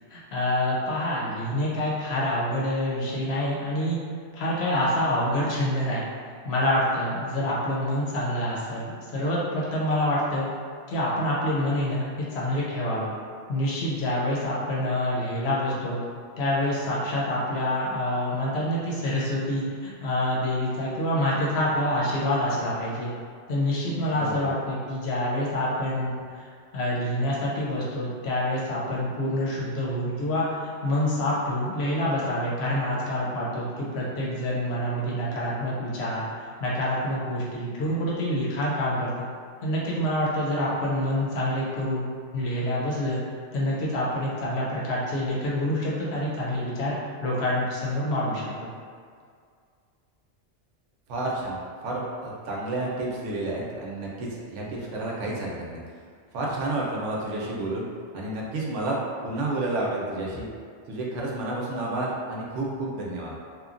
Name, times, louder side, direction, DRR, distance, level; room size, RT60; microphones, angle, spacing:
voice 1, 0.1-4.0 4.3-6.0 6.4-10.5 10.9-13.1 13.5-16.0 16.4-23.1 23.5-36.2 36.6-39.3 39.6-43.2 43.5-46.9 47.2-48.7, left 1 dB, 65° left, -6 dB, 0.9 m, -27 dB
voice 2, 24.1-24.5 51.1-55.8 56.3-57.9 58.1-59.0 59.2-60.5 60.9-63.3, right 2 dB, 85° right, -3 dB, 0.9 m, -30 dB
3.0 x 2.2 x 2.4 m, 2.1 s
omnidirectional pair, 1.2 m